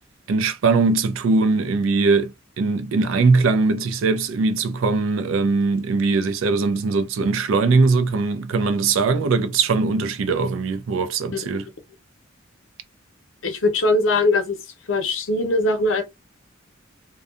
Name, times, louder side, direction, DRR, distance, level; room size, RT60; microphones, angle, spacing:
voice 1, 0.3-11.7, right 4 dB, 85° right, 0.4 m, -20 dB
voice 2, 13.4-14.6 14.9-16.0, left 2 dB, 80° left, 0.6 m, -21 dB
2.6 x 2.2 x 2.3 m
head